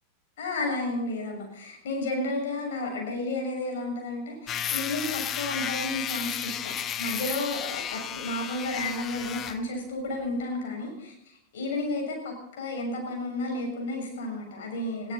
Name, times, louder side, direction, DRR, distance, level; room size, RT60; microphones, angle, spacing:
voice 1, 0.4-15.1, left 2 dB, 55° left, 1 dB, 6.8 m, -32 dB
sound 1, 4.5-9.6, left 9 dB, 25° left, 0.9 m, -33 dB
21.0 x 16.0 x 4.3 m, 0.77 s
figure-of-eight pair, 90°, 0 cm